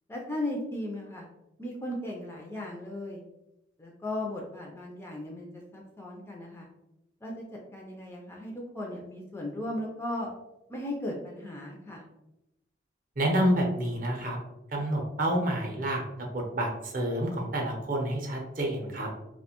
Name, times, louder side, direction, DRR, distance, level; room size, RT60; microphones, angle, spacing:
voice 1, 0.1-1.3 1.6-3.2 3.8-6.7 7.2-10.3 10.7-12.0, left 1 dB, 15° left, -1 dB, 0.3 m, -36 dB
voice 2, 13.2-14.4 14.7-16.0 16.3-19.1, right 1 dB, 45° right, 0 dB, 0.5 m, -28 dB
2.4 x 2.1 x 2.8 m, 0.89 s
head